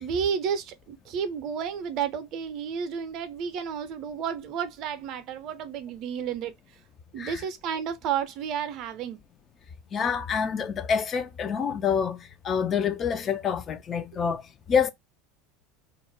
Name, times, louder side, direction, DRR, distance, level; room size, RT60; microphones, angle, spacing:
voice 1, 0.0-6.5 7.1-9.2 14.1-14.2, right 7 dB, 50° right, 0.5 m, -31 dB
voice 2, 9.9-14.4 14.7-14.9, left 7 dB, 35° left, 0.4 m, -27 dB
2.3 x 2.0 x 3.1 m
figure-of-eight pair, 80°, 0 cm